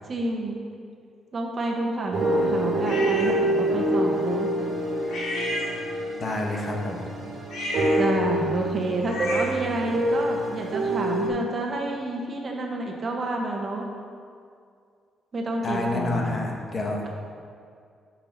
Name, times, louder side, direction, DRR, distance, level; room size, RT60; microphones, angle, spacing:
voice 1, 0.1-0.6 1.3-4.5 8.0-13.9 15.3-16.3, right 2 dB, 40° right, 0 dB, 1.3 m, -29 dB
sound 1, 2.1-11.3, right 1 dB, 60° right, 1.8 m, -26 dB
sound 2, 2.9-3.4 5.1-6.2 7.4-9.7, left 1 dB, 75° left, 2.0 m, -33 dB
voice 2, 6.2-7.3 15.6-17.1, left 2 dB, 40° left, 0 dB, 1.4 m, -29 dB
6.9 x 5.8 x 6.0 m, 2.2 s
cardioid pair, 90°, 0 cm